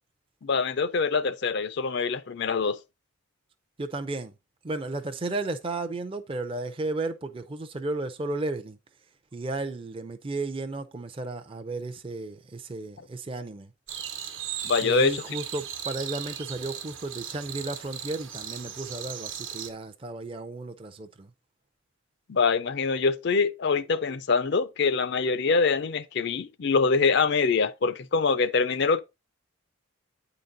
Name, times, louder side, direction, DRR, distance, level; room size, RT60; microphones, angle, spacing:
voice 1, 0.4-2.8 14.6-15.4 22.3-29.0, left 4 dB, 55° left, 0.4 m, -24 dB
voice 2, 3.8-4.3 4.6-8.8 9.3-13.7 14.8-21.3, right 2 dB, 25° right, 0.5 m, -34 dB
sound 1, 13.9-19.7, right 9 dB, 65° right, 1.0 m, -37 dB
9.2 x 3.9 x 3.8 m
head